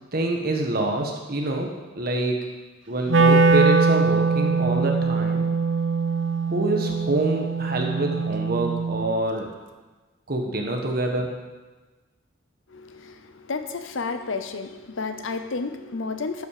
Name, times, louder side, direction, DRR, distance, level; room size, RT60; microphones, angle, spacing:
voice 1, 0.1-1.7 1.9-2.4 2.9-5.4 6.5-9.5 10.3-11.3, right 2 dB, 45° right, 2 dB, 1.3 m, -26 dB
Wind instrument woodwind instrument, 3.1-9.2, right 4 dB, 65° right, 0.7 m, -22 dB
voice 2, 12.7-16.5, left 4 dB, 65° left, 8 dB, 0.7 m, -31 dB
12.5 x 5.7 x 5.0 m, 1.2 s
head